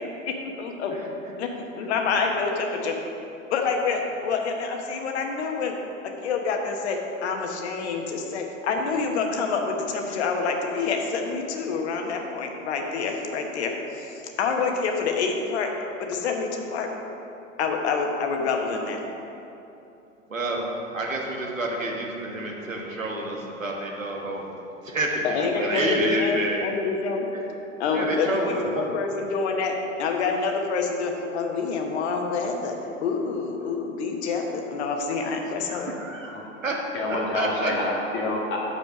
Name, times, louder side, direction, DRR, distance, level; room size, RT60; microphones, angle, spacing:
voice 1, 0.2-1.0 1.4-3.0 3.5-15.7 16.0-16.9 17.6-19.0 25.2-27.3 27.8-32.8 33.0-36.0, left 4 dB, 55° left, 3 dB, 1.1 m, -27 dB
voice 2, 20.3-20.7 20.9-24.5 24.8-25.2 25.5-26.6 27.3-27.4 27.9-29.0 35.6-36.4 36.6-36.7 37.3-37.7, right 1 dB, 90° right, -1 dB, 1.3 m, -29 dB
voice 3, 36.1-36.5 36.9-38.6, left 2 dB, 30° left, -3 dB, 1.8 m, -28 dB
6.7 x 5.6 x 5.8 m, 2.9 s
figure-of-eight pair, 90°, 38 cm